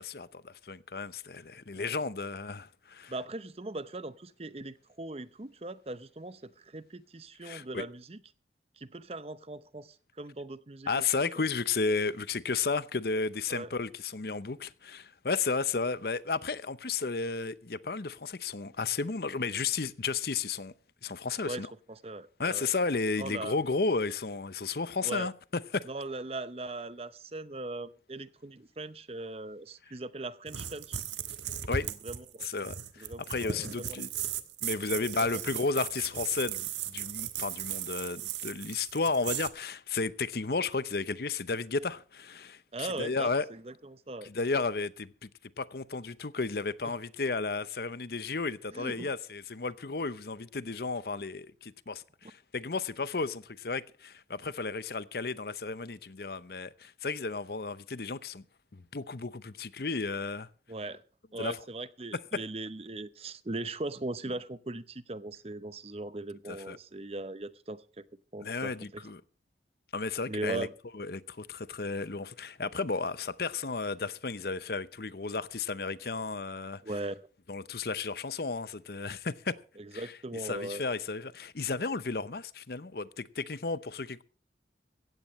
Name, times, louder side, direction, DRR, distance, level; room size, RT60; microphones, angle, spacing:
voice 1, 0.0-3.1 7.4-7.8 10.9-20.7 21.0-21.7 22.4-25.9 31.7-31.9 32.4-34.1 34.6-43.5 44.2-45.3 45.6-58.4 58.7-60.5 61.4-61.6 66.5-66.8 68.4-69.2 69.9-70.7 70.9-76.8 77.5-79.6 79.9-84.2, left 4 dB, 60° left, 0.8 m, -33 dB
voice 2, 3.1-8.2 8.8-11.1 13.5-13.7 21.4-22.7 23.2-23.6 25.0-25.3 25.9-31.0 31.8-32.5 33.0-34.0 35.0-35.4 42.7-44.3 46.8-46.9 48.7-49.1 60.7-61.0 61.3-68.0 68.3-69.0 70.3-70.7 76.8-77.3 79.8-80.8, right 2 dB, 35° right, 0.7 m, -39 dB
sound 1, 30.5-39.5, right 9 dB, 85° right, 1.4 m, -37 dB
16.5 x 15.5 x 3.2 m
head